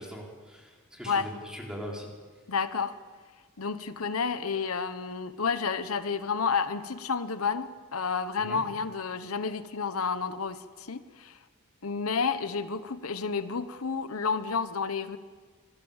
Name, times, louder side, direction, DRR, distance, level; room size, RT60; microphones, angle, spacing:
voice 1, 0.0-2.1 8.4-8.6, equal, 5° right, -1 dB, 4.5 m, -41 dB
voice 2, 2.5-2.9 3.6-11.4 11.8-15.2, left 5 dB, 80° left, 11 dB, 1.0 m, -30 dB
26.0 x 18.5 x 7.3 m, 1.5 s
head